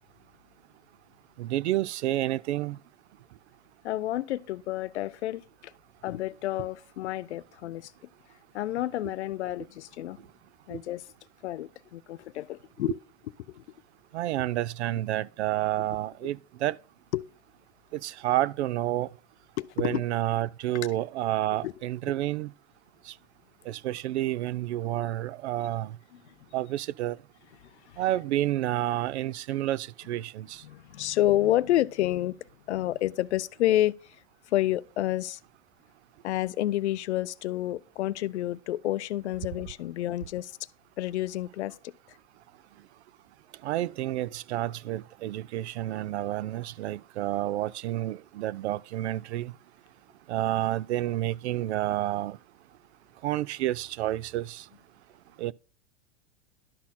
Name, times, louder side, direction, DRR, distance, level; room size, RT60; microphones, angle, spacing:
voice 1, 1.4-2.8 10.7-10.8 14.1-16.8 17.9-19.1 19.8-22.5 23.1-23.2 23.7-26.0 26.5-27.2 28.0-30.6 43.6-49.5 50.3-52.4 53.2-54.7 55.4-55.5, right 14 dB, 80° right, 0.5 m, -29 dB
voice 2, 3.8-5.7 6.0-7.9 8.5-10.2 10.7-11.0 11.4-13.0 13.5-13.6 17.1-17.3 19.6-20.0 21.6-21.7 26.1-26.2 27.9-28.0 30.6-32.4 32.7-34.2 34.5-35.4 36.2-40.5 41.0-41.7, left 14 dB, 90° left, 0.5 m, -29 dB
11.5 x 4.2 x 4.1 m
hypercardioid pair, 120°, 33 cm